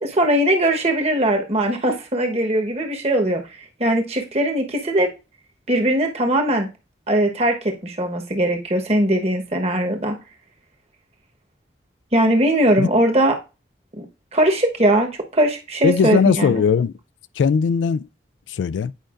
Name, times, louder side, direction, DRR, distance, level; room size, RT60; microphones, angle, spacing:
voice 1, 0.0-3.4 3.8-5.1 5.7-6.7 7.1-10.2 12.1-13.4 14.0-14.1 14.3-16.6, right 1 dB, 35° right, 1.1 m, -20 dB
voice 2, 15.8-16.9 17.4-18.1 18.5-18.9, left 6 dB, 90° left, 0.3 m, -19 dB
9.0 x 5.2 x 2.5 m
head